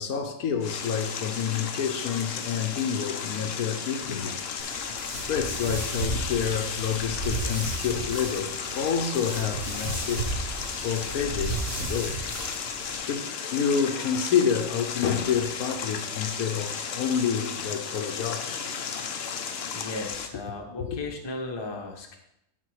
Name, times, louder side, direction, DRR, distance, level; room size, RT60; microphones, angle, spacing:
voice 1, 0.0-4.3 5.3-10.3 10.7-12.2 13.0-18.7 20.8-21.0, left 7 dB, 75° left, 1.3 m, -28 dB
sound 1, 0.6-20.3, left 6 dB, 55° left, 0.8 m, -34 dB
sound 2, 4.6-12.9, right 2 dB, 65° right, 3.0 m, -34 dB
voice 2, 19.7-22.2, left 2 dB, 20° left, 0.9 m, -35 dB
12.0 x 4.3 x 4.7 m
omnidirectional pair, 1.6 m